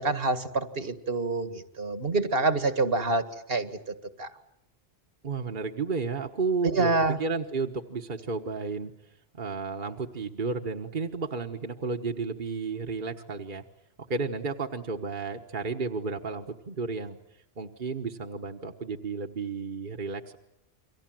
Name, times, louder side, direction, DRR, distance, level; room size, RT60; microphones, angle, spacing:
voice 1, 0.0-3.2 3.5-3.7 4.2-4.3 6.7-7.2, right 3 dB, 70° right, 9 dB, 2.0 m, -26 dB
voice 2, 5.2-8.9 9.3-13.6 14.1-17.2 17.6-20.4, right 4 dB, 55° right, 3 dB, 1.5 m, -32 dB
29.0 x 24.0 x 7.7 m, 0.84 s
omnidirectional pair, 1.0 m